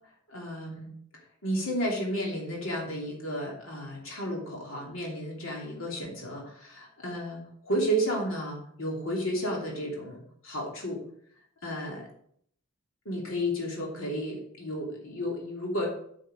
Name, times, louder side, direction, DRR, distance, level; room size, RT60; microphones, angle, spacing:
voice 1, 0.3-0.9 1.4-11.0 11.6-12.1 13.0-15.9, equal, 70° left, -2 dB, 2.9 m, -32 dB
8.7 x 6.4 x 5.1 m, 0.66 s
head